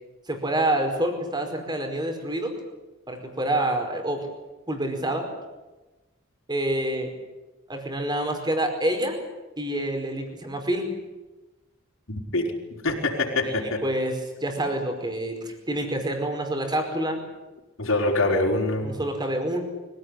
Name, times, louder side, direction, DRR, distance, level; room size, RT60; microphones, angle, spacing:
voice 1, 0.3-2.5 3.1-4.3 4.7-5.3 6.5-7.1 7.7-9.2 9.6-10.9 13.4-17.2 18.8-19.6, right 1 dB, 20° right, 5 dB, 4.9 m, -27 dB
voice 2, 12.1-13.8 17.8-19.0, left 2 dB, 70° left, 1 dB, 5.2 m, -25 dB
24.5 x 17.5 x 10.0 m, 1.1 s
head